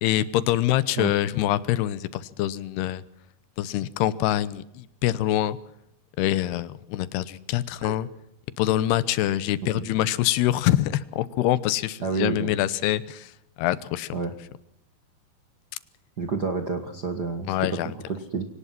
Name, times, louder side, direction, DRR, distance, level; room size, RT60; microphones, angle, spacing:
voice 1, 0.0-3.0 3.6-5.6 6.2-8.1 8.6-13.3 13.6-14.1 17.5-17.9, left 13 dB, 85° left, 17 dB, 3.0 m, -25 dB
voice 2, 12.0-12.5 14.1-14.3 16.2-18.5, right 4 dB, 55° right, 7 dB, 1.1 m, -29 dB
23.5 x 18.5 x 6.0 m, 0.77 s
omnidirectional pair, 4.6 m